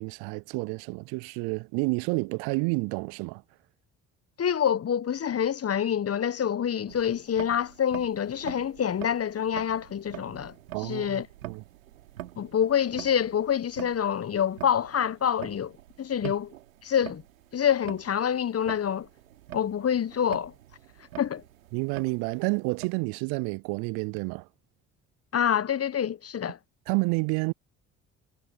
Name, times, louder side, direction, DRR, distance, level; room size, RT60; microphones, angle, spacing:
voice 1, 0.0-3.4 10.7-11.6 16.2-16.3 21.7-24.5 26.9-27.5, right 30 dB, 70° right, 0.5 m, -29 dB
voice 2, 4.4-10.5 10.8-11.3 12.4-15.7 16.0-16.5 16.8-17.2 17.5-19.1 19.5-20.5 21.2-21.4 25.3-26.6, left 8 dB, 35° left, 1.1 m, -26 dB
sound 1, 6.9-23.0, right 14 dB, 90° right, 3.0 m, -46 dB
hypercardioid pair, 50°, 39 cm